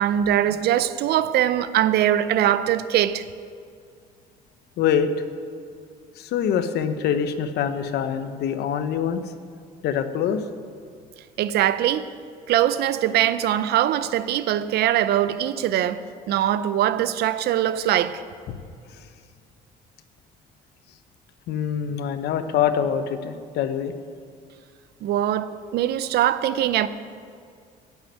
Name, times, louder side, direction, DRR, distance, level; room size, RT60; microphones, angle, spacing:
voice 1, 0.0-3.2 11.4-12.1 12.5-16.0 16.3-18.2 25.0-26.9, right 11 dB, 70° right, 0.6 m, -22 dB
voice 2, 4.8-5.1 6.2-9.2 9.8-10.4 21.5-23.9, left 8 dB, 75° left, 0.9 m, -24 dB
10.5 x 7.3 x 9.3 m
cardioid pair, 110°, 17 cm